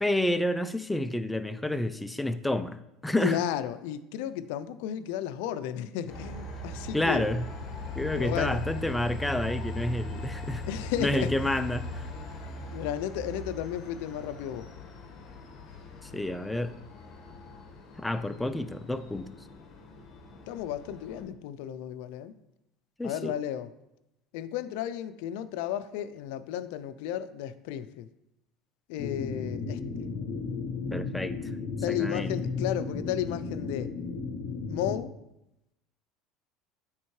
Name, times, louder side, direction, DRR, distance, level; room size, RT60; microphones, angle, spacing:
voice 1, 0.0-3.4 6.9-7.5 7.9-10.6 11.0-12.0 16.0-16.8 18.0-19.3 23.0-23.3 30.9-31.4 31.9-32.3, left 1 dB, 5° left, 11 dB, 0.4 m, -29 dB
voice 2, 3.2-7.2 8.1-8.6 10.7-11.6 12.7-14.7 20.5-22.3 23.0-23.7 24.3-28.1 28.9-29.8 31.8-33.9 34.7-35.1, left 10 dB, 75° left, 13 dB, 0.4 m, -33 dB
Train, 6.1-21.2, left 1 dB, 45° left, 1.3 m, -40 dB
sound 1, 29.0-35.0, left 4 dB, 60° left, 0.7 m, -34 dB
8.8 x 3.6 x 3.1 m, 0.90 s
supercardioid pair, 110°, 0 cm